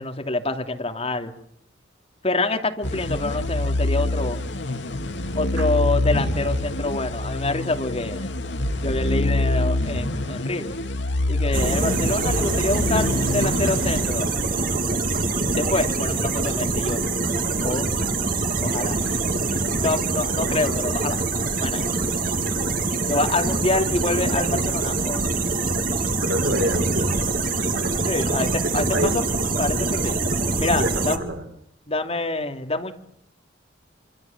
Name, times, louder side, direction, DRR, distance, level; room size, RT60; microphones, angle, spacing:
voice 1, 0.0-1.3 2.2-4.4 5.4-8.3 8.8-10.7 11.3-14.3 15.5-17.0 17.6-18.0 18.6-19.0 19.7-21.2 21.6-21.8 23.1-25.2 28.1-29.3 29.6-30.2 30.6-31.2 31.9-32.9, left 2 dB, 30° left, 5 dB, 2.7 m, -26 dB
sound 1, 2.8-14.7, left 2 dB, 65° left, 2.3 m, -26 dB
sound 2, 11.5-31.2, right 3 dB, 45° right, 2.7 m, -24 dB
voice 2, 26.2-27.1 27.7-28.1 28.9-29.1 30.8-31.4, equal, 85° right, 4 dB, 5.2 m, -28 dB
26.5 x 25.5 x 7.3 m, 0.69 s
head